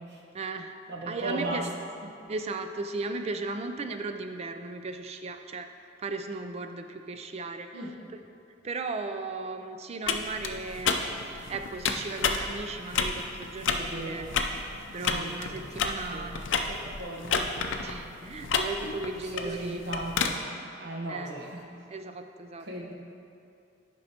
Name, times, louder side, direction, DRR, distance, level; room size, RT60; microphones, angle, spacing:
voice 1, 0.3-0.8 1.1-1.6 2.3-5.7 6.0-7.8 8.6-14.3 14.9-16.5 17.8-19.8 21.1-21.3 21.9-22.7, right 3 dB, 35° right, 7 dB, 0.4 m, -36 dB
voice 2, 0.9-1.7 2.0-2.1 7.7-8.0 13.7-14.3 15.0-15.7 16.1-17.5 18.4-18.5 19.1-21.8 22.6-22.9, right 1 dB, 65° right, -2 dB, 1.1 m, -37 dB
sound 1, 10.0-20.3, left 5 dB, 80° left, 0.5 m, -31 dB
11.0 x 5.4 x 2.9 m, 2.6 s
head